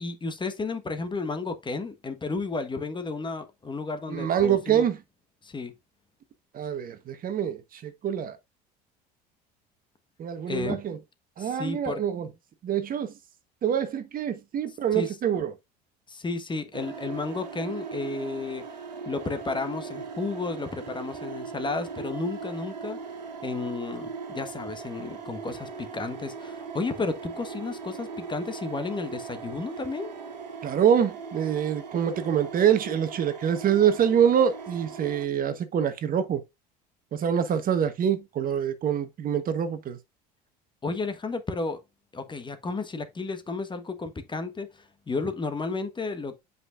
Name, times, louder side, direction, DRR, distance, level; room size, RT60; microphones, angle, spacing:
voice 1, 0.0-4.9 5.4-5.7 10.5-10.8 11.4-12.0 14.7-15.2 16.1-18.7 19.0-23.0 23.4-30.1 40.8-41.8 42.1-46.4, left 3 dB, 20° left, 1.3 m, -32 dB
voice 2, 4.1-5.0 6.5-8.4 10.2-11.0 11.4-12.3 12.6-13.1 13.6-15.5 30.6-36.4 37.1-40.0, right 8 dB, 45° right, 1.2 m, -25 dB
sound 1, 16.7-35.3, right 5 dB, 90° right, 1.5 m, -39 dB
7.7 x 5.4 x 2.5 m
hypercardioid pair, 70°, 21 cm